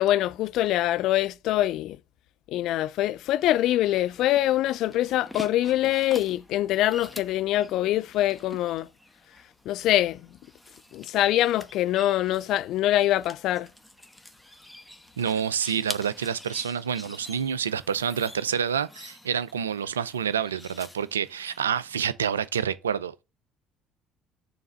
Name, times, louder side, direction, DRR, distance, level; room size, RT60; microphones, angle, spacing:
voice 1, 0.0-2.0 2.5-8.9 9.7-10.2 10.9-13.7, left 14 dB, 60° left, 0.3 m, -24 dB
sound 1, 3.4-22.0, left 1 dB, 5° left, 1.0 m, -46 dB
voice 2, 15.2-23.2, right 8 dB, 85° right, 0.4 m, -28 dB
7.0 x 3.3 x 6.1 m
hypercardioid pair, 55°, 0 cm